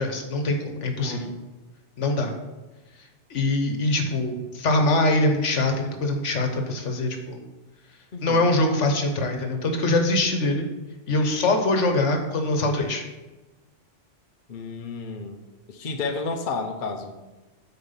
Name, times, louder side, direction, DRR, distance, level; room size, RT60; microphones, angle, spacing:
voice 1, 0.0-1.3 2.0-2.3 3.3-7.4 8.2-10.7 11.1-13.0, left 2 dB, 75° left, 4 dB, 1.4 m, -23 dB
voice 2, 1.0-1.3 8.1-8.5 14.5-15.4 15.7-17.2, left 4 dB, 45° left, 4 dB, 0.9 m, -31 dB
9.1 x 4.4 x 5.7 m, 1.1 s
omnidirectional pair, 1.2 m